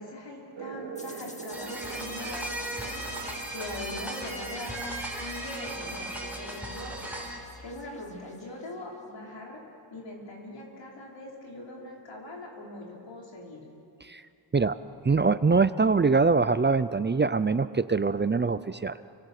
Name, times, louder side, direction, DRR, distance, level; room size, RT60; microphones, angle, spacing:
voice 1, 0.0-3.2 3.5-7.3 7.6-9.6 9.9-13.7, left 1 dB, 85° left, -2 dB, 5.4 m, -41 dB
sound 1, 0.5-7.7, right 6 dB, 75° right, 1.6 m, -45 dB
sound 2, 0.9-8.7, left 1 dB, 15° left, 2.2 m, -48 dB
sound 3, 1.5-7.4, right 1 dB, 5° right, 4.2 m, -37 dB
voice 2, 15.0-19.0, right 4 dB, 25° right, 14 dB, 0.5 m, -23 dB
29.0 x 23.5 x 6.6 m, 2.6 s
wide cardioid pair, 115°, 43 cm